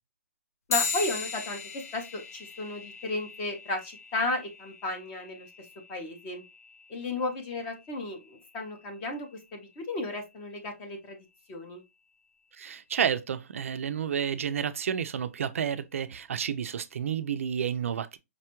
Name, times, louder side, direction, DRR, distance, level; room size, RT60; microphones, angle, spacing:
sound 1, 0.7-10.5, left 5 dB, 75° left, 0.6 m, -39 dB
voice 1, 0.7-5.5 5.9-6.4 6.9-11.8, left 2 dB, 15° left, 0.5 m, -34 dB
voice 2, 12.5-18.2, right 8 dB, 60° right, 0.4 m, -30 dB
5.1 x 2.2 x 2.8 m
hypercardioid pair, 175°, 8 cm